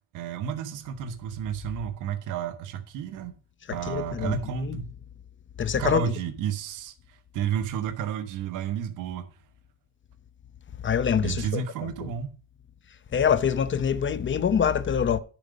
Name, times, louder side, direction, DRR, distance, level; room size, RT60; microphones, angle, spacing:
voice 1, 0.1-3.3 3.7-4.9 5.8-6.9 7.3-9.3 11.2-12.3, right 8 dB, 90° right, 1.1 m, -31 dB
voice 2, 3.9-4.4 4.6-4.8 5.6-6.0 10.8-11.6 13.1-15.2, left 7 dB, 40° left, 0.7 m, -24 dB
10.5 x 5.0 x 5.1 m
cardioid pair, 90°, 30 cm